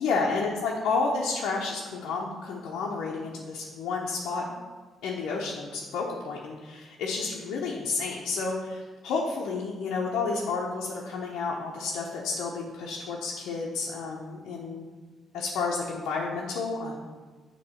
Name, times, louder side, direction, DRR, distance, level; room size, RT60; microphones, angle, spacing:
voice 1, 0.0-4.6 5.0-14.9 15.3-17.0, left 4 dB, 85° left, -3 dB, 0.7 m, -31 dB
6.8 x 3.0 x 5.6 m, 1.5 s
cardioid pair, 90°, 0 cm